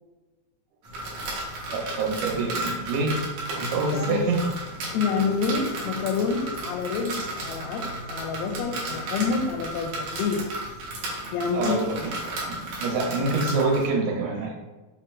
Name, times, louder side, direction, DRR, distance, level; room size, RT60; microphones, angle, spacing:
sound 1, 0.8-13.9, right 2 dB, 75° right, 1.6 m, -34 dB
voice 1, 1.7-3.2 3.5-4.4 11.5-14.6, right 3 dB, 90° right, -1 dB, 2.6 m, -26 dB
voice 2, 3.9-4.3 4.9-10.4 11.3-11.8, left 5 dB, 85° left, 5 dB, 2.5 m, -27 dB
6.0 x 3.1 x 2.3 m, 1.2 s
omnidirectional pair, 4.4 m